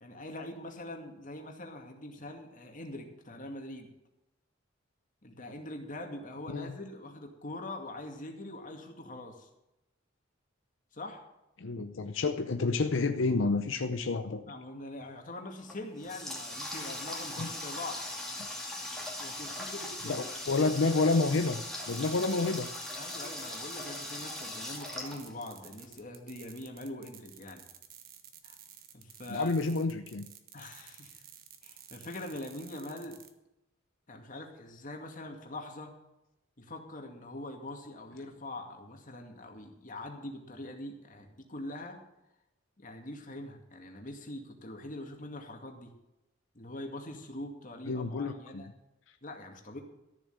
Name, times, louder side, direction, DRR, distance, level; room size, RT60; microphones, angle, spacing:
voice 1, 0.0-3.9 5.2-9.5 10.9-11.2 14.4-18.0 19.2-20.6 23.0-27.6 28.4-28.6 28.9-29.5 30.5-31.2 31.6-33.2 34.1-35.9 36.6-42.0 42.8-45.9 46.5-48.7 49.2-49.8, left 1 dB, 40° left, 3 dB, 2.3 m, -43 dB
voice 2, 11.6-14.4 17.4-17.5 20.0-22.7 29.3-30.3 47.9-48.6, left 3 dB, 70° left, 9 dB, 0.7 m, -29 dB
Water tap faucet, 15.6-25.8, left 1 dB, ahead, 2.3 m, -40 dB
sound 1, 21.9-33.3, right 9 dB, 45° right, 1.3 m, -53 dB
13.5 x 7.4 x 8.0 m, 0.90 s
head